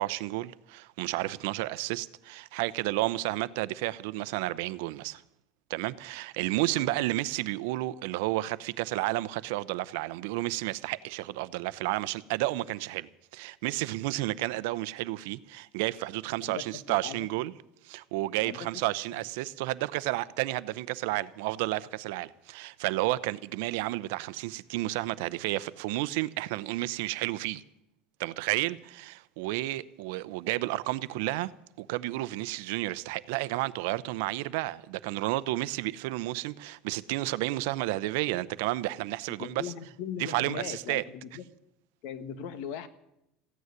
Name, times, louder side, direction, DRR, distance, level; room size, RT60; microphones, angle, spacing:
voice 1, 0.0-5.2 5.7-17.5 17.8-27.6 28.2-31.5 31.8-39.6 40.2-41.0, right 18 dB, 75° right, 0.7 m, -31 dB
voice 2, 16.9-17.3 18.4-18.7 19.1-19.2 39.4-41.4 42.0-42.9, left 8 dB, 60° left, 1.4 m, -39 dB
15.5 x 9.4 x 9.6 m
cardioid pair, 155°, 0 cm